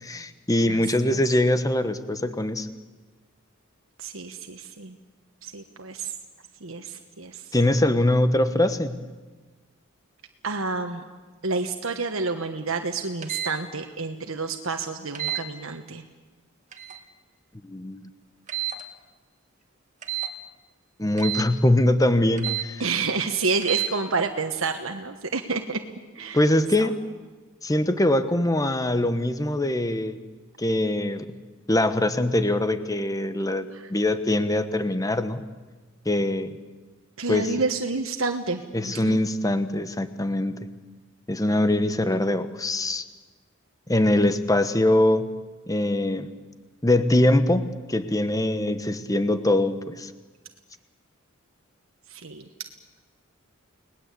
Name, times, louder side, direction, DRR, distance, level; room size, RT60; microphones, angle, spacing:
voice 1, 0.0-2.7 7.5-9.0 17.6-18.1 21.0-22.8 26.3-27.0 27.6-30.2 30.6-31.2 31.7-35.4 36.0-36.5 37.3-37.5 38.7-40.6 41.3-43.0 43.9-45.3 45.7-46.3 46.8-50.1, left 1 dB, 15° left, 11 dB, 1.2 m, -23 dB
voice 2, 0.6-1.2 4.0-5.0 5.4-6.1 6.6-7.5 10.4-11.0 11.4-16.0 22.8-25.8 26.1-26.4 26.8-26.9 33.7-33.9 37.2-39.2 52.1-52.5, right 4 dB, 75° right, 5 dB, 1.4 m, -29 dB
sound 1, 13.2-13.5 15.1-15.4 16.7-17.0 18.5-18.8 20.0-20.3 21.2-21.5 22.4-22.7 23.6-23.9, right 12 dB, 35° right, 2.0 m, -29 dB
30.0 x 19.5 x 8.3 m, 1.3 s
head